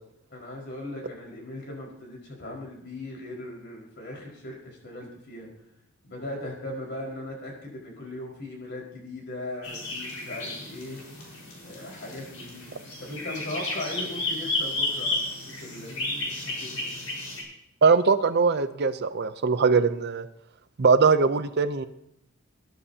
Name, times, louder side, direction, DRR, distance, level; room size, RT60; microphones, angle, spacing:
voice 1, 0.3-5.5 6.0-11.0 11.6-12.7 13.0-16.9, left 1 dB, 55° left, -2 dB, 5.0 m, -38 dB
sound 1, 9.6-17.4, left 2 dB, 85° left, 4.8 m, -33 dB
voice 2, 17.8-20.3 20.8-21.8, right 5 dB, 50° right, 12 dB, 0.6 m, -21 dB
20.5 x 11.0 x 2.8 m, 0.79 s
head